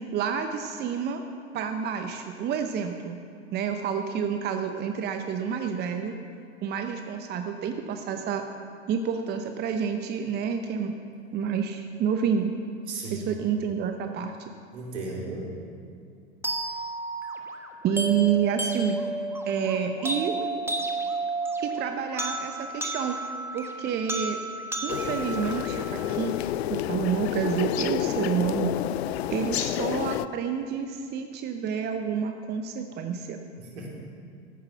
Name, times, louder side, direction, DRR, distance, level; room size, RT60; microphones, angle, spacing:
voice 1, 0.1-1.2 1.5-3.2 3.5-6.1 6.6-8.5 8.9-11.0 11.3-12.5 13.1-14.5 17.8-19.0 19.4-20.3 21.6-23.2 23.5-24.4 24.8-26.3 26.7-28.7 29.3-33.4, right 7 dB, 30° right, 6 dB, 0.9 m, -29 dB
voice 2, 12.9-13.3 14.7-15.5 33.6-33.9, right 2 dB, 70° right, -2 dB, 3.7 m, -35 dB
sound 1, 16.4-26.5, right 2 dB, 5° right, 1.3 m, -32 dB
sound 2, 24.9-30.3, left 13 dB, 65° left, 0.5 m, -29 dB
14.5 x 9.9 x 5.8 m, 2.3 s
hypercardioid pair, 95°, 35 cm